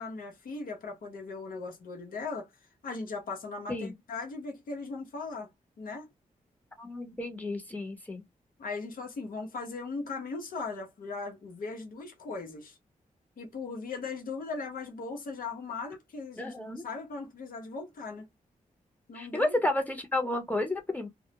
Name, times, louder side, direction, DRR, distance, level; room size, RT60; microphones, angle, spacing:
voice 1, 0.0-2.5 2.8-5.5 5.8-6.1 8.6-12.8 13.4-18.3 19.1-19.6, left 4 dB, 75° left, 0.9 m, -38 dB
voice 2, 6.8-8.2 16.4-16.8 19.1-21.1, left 1 dB, 10° left, 0.9 m, -31 dB
2.3 x 2.1 x 2.8 m
cardioid pair, 65°, 15 cm